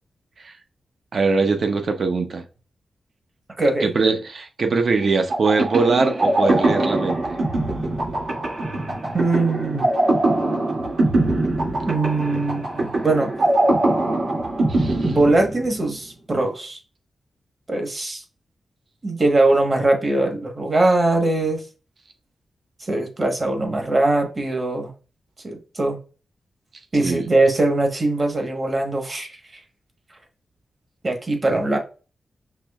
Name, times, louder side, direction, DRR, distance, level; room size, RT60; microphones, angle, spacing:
voice 1, 1.1-2.4 3.8-7.2 14.7-15.1 27.0-27.2, right 4 dB, 55° right, 0.7 m, -21 dB
voice 2, 3.6-3.9 9.1-9.8 11.8-13.3 15.0-16.8 17.7-18.2 19.0-21.6 22.8-24.9 25.4-26.0 26.9-29.6 31.0-31.8, right 2 dB, 30° right, 1.1 m, -21 dB
sound 1, 5.3-16.0, right 2 dB, 80° right, 2.1 m, -22 dB
5.8 x 3.1 x 2.3 m
wide cardioid pair, 125°, 0 cm